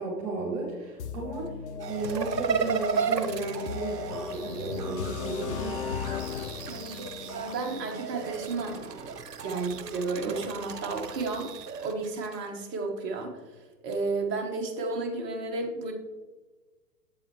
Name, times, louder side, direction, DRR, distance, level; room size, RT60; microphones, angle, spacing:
voice 1, 0.0-1.5 1.9-5.8, right 3 dB, 45° right, -3 dB, 1.9 m, -33 dB
sound 1, 1.0-8.9, left 7 dB, 45° left, 0.5 m, -38 dB
sound 2, 1.8-12.0, right 6 dB, 70° right, 1.0 m, -42 dB
sound 3, 2.0-4.8 6.1-7.6 8.1-12.4, right 6 dB, 85° right, 0.7 m, -34 dB
voice 2, 6.7-8.8 9.4-11.5 11.8-15.9, right 3 dB, 25° right, 2 dB, 1.1 m, -32 dB
7.7 x 7.6 x 3.1 m, 1.3 s
figure-of-eight pair, 115°, 49 cm